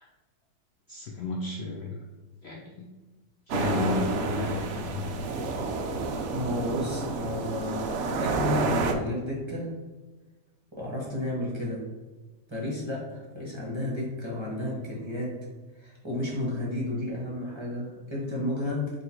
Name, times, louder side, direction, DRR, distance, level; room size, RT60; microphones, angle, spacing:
voice 1, 0.9-1.9 2.4-2.8 3.5-5.2 5.9-6.0, left 3 dB, 80° left, -1 dB, 0.5 m, -32 dB
sound 1, 3.5-8.9, right 4 dB, 90° right, 0.6 m, -30 dB
voice 2, 6.0-9.7 10.7-11.8 12.5-15.3 15.8-18.9, left 1 dB, 20° right, -5 dB, 1.0 m, -32 dB
3.8 x 2.9 x 4.3 m, 1.2 s
omnidirectional pair, 1.8 m